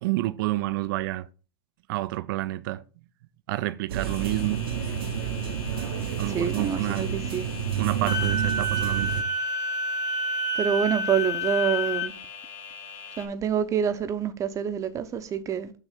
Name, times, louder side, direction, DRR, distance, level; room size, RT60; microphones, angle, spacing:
voice 1, 0.0-1.3 1.9-2.8 3.5-4.7 6.2-7.1 7.8-9.1, right 18 dB, 65° right, 0.4 m, -29 dB
sound 1, 3.9-9.2, right 9 dB, 80° right, 1.0 m, -29 dB
sound 2, 4.0-13.3, left 6 dB, 55° left, 1.8 m, -43 dB
voice 2, 6.3-7.5 10.6-12.1 13.2-15.7, right 8 dB, 25° right, 0.7 m, -27 dB
Wind instrument woodwind instrument, 8.1-12.1, equal, 25° left, 1.1 m, -28 dB
6.0 x 3.2 x 5.7 m
hypercardioid pair, 115°, 12 cm